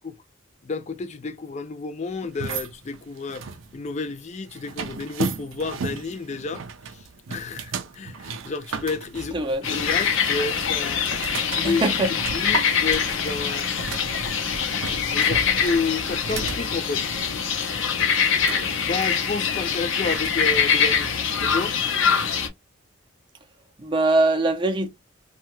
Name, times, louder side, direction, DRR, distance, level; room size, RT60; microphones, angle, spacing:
voice 1, 0.6-3.4 3.7-6.6 6.9-7.0 7.3-9.4 9.7-11.0 11.5-11.9 12.3-14.1 14.9-17.0 18.5-21.1 21.4-21.8, left 4 dB, 35° left, 0.4 m, -30 dB
sound 1, 2.2-20.8, right 5 dB, 75° right, 0.4 m, -36 dB
voice 2, 9.3-9.7 11.6-12.1 23.8-24.9, right 2 dB, 25° right, 0.5 m, -22 dB
sound 2, 9.6-22.5, left 7 dB, 75° left, 0.6 m, -24 dB
2.7 x 2.3 x 3.0 m
head